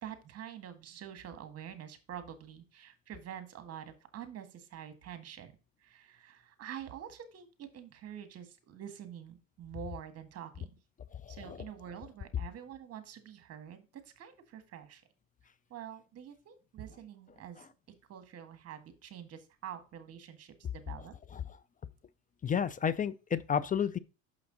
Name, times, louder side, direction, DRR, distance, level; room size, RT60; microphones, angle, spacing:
voice 1, 0.0-5.5 5.8-10.7 11.3-13.8 14.2-15.0 15.7-17.6 18.1-21.1, right 9 dB, 50° right, 1.7 m, -46 dB
voice 2, 11.2-11.6 17.6-17.7 21.3-21.4 22.4-24.0, left 7 dB, 25° left, 0.5 m, -31 dB
6.2 x 5.8 x 4.0 m
supercardioid pair, 95°, 32 cm